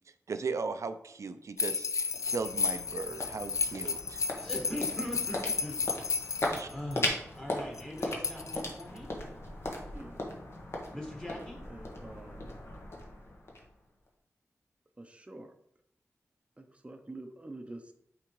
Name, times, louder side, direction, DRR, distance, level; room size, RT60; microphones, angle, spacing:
voice 1, 0.3-4.2 6.5-6.7, right 4 dB, 70° right, 10 dB, 0.4 m, -37 dB
sound 1, 1.6-7.0 7.8-9.0, left 5 dB, 75° left, 0.4 m, -33 dB
sound 2, 1.9-14.1, left 1 dB, 55° left, 1.2 m, -39 dB
voice 2, 4.3-5.8 6.3-9.1 10.9-11.6, left 1 dB, 15° left, -1 dB, 1.5 m, -41 dB
voice 3, 11.7-12.6 15.0-15.5 16.6-17.9, right 2 dB, 25° right, 6 dB, 0.6 m, -47 dB
8.6 x 3.6 x 3.1 m, 0.72 s
wide cardioid pair, 115°, 5 cm